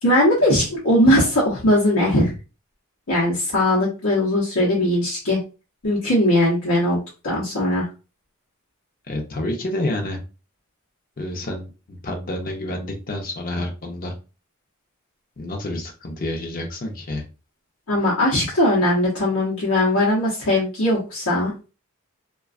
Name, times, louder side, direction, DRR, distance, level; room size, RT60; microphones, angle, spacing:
voice 1, 0.0-2.3 3.1-5.4 5.8-7.0 7.2-7.9 17.9-21.5, left 1 dB, 80° left, -6 dB, 0.8 m, -19 dB
voice 2, 9.1-10.2 11.2-14.1 15.4-17.2, left 1 dB, 45° left, 2 dB, 0.6 m, -29 dB
2.4 x 2.3 x 2.3 m, 0.32 s
head